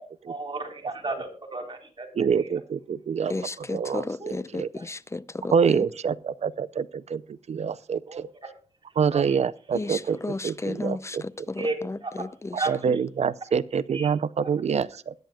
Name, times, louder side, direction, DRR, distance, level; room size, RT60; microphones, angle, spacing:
voice 1, 0.3-2.1 2.4-2.5 4.2-4.3 4.7-4.9 8.1-8.2 9.1-9.4 11.6-11.8 12.0-12.3 12.6-12.7 13.9-14.1, right 3 dB, 40° right, 4.0 m, -33 dB
voice 2, 2.1-3.3 3.7-4.1 4.5-4.7 5.5-7.2 7.5-8.3 9.0-10.2 10.4-11.5 12.7-15.1, right 6 dB, 70° right, 0.5 m, -26 dB
voice 3, 3.3-5.8 9.7-12.9, left 2 dB, 25° left, 0.6 m, -34 dB
21.0 x 10.5 x 2.3 m
cardioid pair, 75°, 12 cm